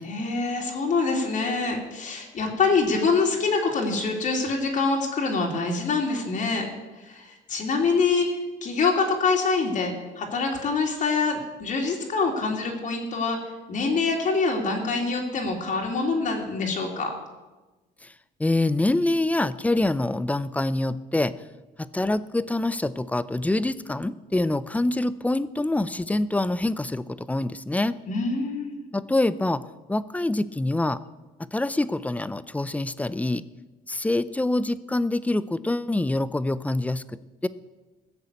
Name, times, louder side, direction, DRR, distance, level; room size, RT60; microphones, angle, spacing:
voice 1, 0.0-6.7 7.0-8.3 8.6-13.4 13.7-17.1 28.1-28.9, left 4 dB, 50° left, 0 dB, 2.8 m, -25 dB
voice 2, 18.4-21.4 21.8-28.0 28.9-29.6 29.9-31.0 31.4-33.4 33.9-37.5, left 2 dB, 10° left, 16 dB, 0.5 m, -25 dB
16.0 x 6.9 x 8.1 m, 1.2 s
cardioid pair, 110°, 17 cm